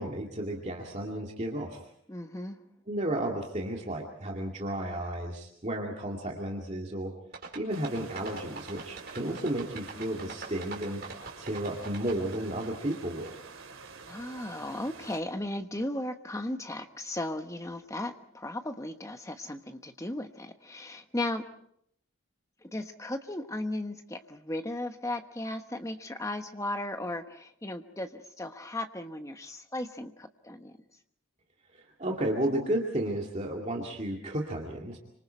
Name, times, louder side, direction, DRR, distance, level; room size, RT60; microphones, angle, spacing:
voice 1, 0.0-1.8 2.9-7.1 7.5-11.0 11.4-13.3 31.7-35.0, right 1 dB, 35° right, 0 dB, 2.3 m, -33 dB
voice 2, 2.1-2.6 14.1-21.5 22.6-30.7, left 1 dB, 15° left, 7 dB, 1.2 m, -36 dB
sound 1, 7.3-12.9 13.2-13.3, right 4 dB, 50° right, 4.6 m, -42 dB
sound 2, 7.7-15.2, right 5 dB, 80° right, 3.3 m, -48 dB
27.5 x 25.5 x 4.5 m, 0.69 s
head